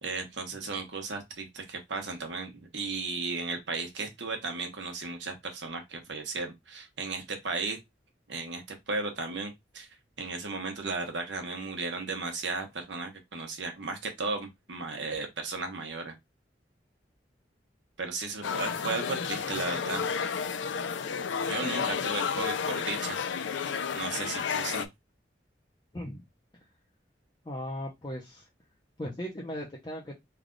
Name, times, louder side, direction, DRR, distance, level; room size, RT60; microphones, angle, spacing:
voice 1, 0.0-7.8 8.3-9.9 10.2-16.1 18.0-20.0 21.4-23.2 23.6-24.9, right 3 dB, 85° right, 1.0 m, -35 dB
sound 1, 18.4-24.9, left 6 dB, 90° left, 0.4 m, -31 dB
voice 2, 25.9-26.2 27.4-28.5 29.0-30.1, equal, 25° left, 0.6 m, -37 dB
3.3 x 2.3 x 3.8 m
head